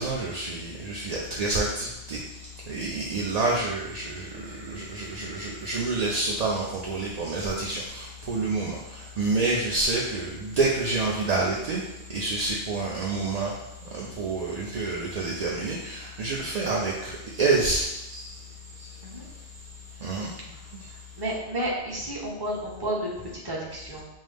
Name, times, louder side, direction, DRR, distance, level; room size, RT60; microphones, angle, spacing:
voice 1, 0.0-2.2 2.7-11.8 12.1-13.6 13.9-18.4 18.8-18.9 20.0-20.3, right 3 dB, 55° right, -3 dB, 0.5 m, -28 dB
voice 2, 20.9-24.1, right 1 dB, 25° right, -4 dB, 0.8 m, -32 dB
5.4 x 2.0 x 3.3 m, 0.92 s
omnidirectional pair, 1.1 m